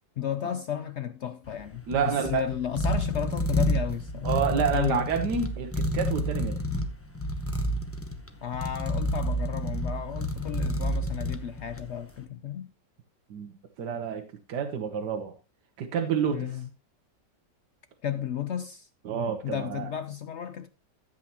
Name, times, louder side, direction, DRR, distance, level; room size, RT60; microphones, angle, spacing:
voice 1, 0.2-4.3 4.7-5.0 8.4-12.7 16.3-16.7 18.0-18.9 19.4-20.7, left 9 dB, 85° left, 0.6 m, -33 dB
sound 1, 1.5-12.0, equal, 10° left, 0.7 m, -30 dB
voice 2, 1.9-2.4 4.2-6.6 13.3-13.5 13.8-15.3 15.8-16.5 19.0-19.9, right 7 dB, 70° right, 1.5 m, -29 dB
13.5 x 8.0 x 2.9 m
omnidirectional pair, 1.9 m